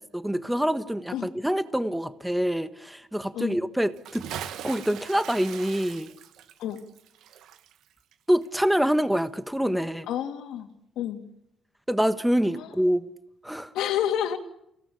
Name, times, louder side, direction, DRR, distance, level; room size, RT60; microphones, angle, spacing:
voice 1, 0.1-4.2 4.6-6.1 8.3-10.1 11.9-13.1 13.4-13.7, equal, 5° right, 1.5 m, -26 dB
Bathtub (filling or washing) / Splash splatter, 3.9-8.9 9.2-9.3, right 10 dB, 85° right, 1.7 m, -41 dB
voice 2, 10.1-10.7 11.0-11.2 12.5-12.7 13.7-14.4, left 10 dB, 85° left, 3.0 m, -29 dB
29.0 x 18.0 x 8.5 m
cardioid pair, 90°, 0 cm